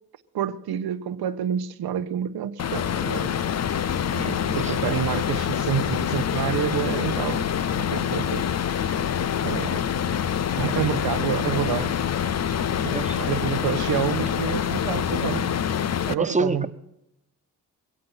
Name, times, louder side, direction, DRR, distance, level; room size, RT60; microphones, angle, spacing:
voice 1, 0.3-3.3 3.6-7.5 7.8-8.6 9.4-9.9 10.6-12.0 12.8-15.5 16.1-16.7, right 9 dB, 80° right, 1.1 m, -28 dB
sound 1, 2.6-16.1, left 8 dB, 45° left, 0.6 m, -26 dB
voice 2, 16.2-16.7, right 3 dB, 20° right, 1.3 m, -27 dB
23.5 x 8.6 x 5.7 m
cardioid pair, 70°, 37 cm